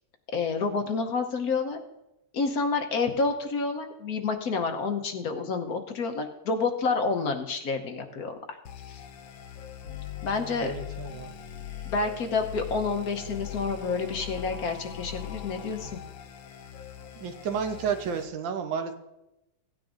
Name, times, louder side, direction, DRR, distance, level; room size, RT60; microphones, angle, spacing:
voice 1, 0.3-1.8 2.3-8.6 8.9-9.0 10.2-10.7 11.8-16.0, left 4 dB, 60° left, 5 dB, 1.3 m, -29 dB
sound 1, 8.7-18.3, left 9 dB, 90° left, 1.5 m, -41 dB
voice 2, 10.6-11.3 17.2-18.9, right 6 dB, 85° right, 6 dB, 1.7 m, -31 dB
17.0 x 9.6 x 2.6 m, 0.91 s
omnidirectional pair, 2.0 m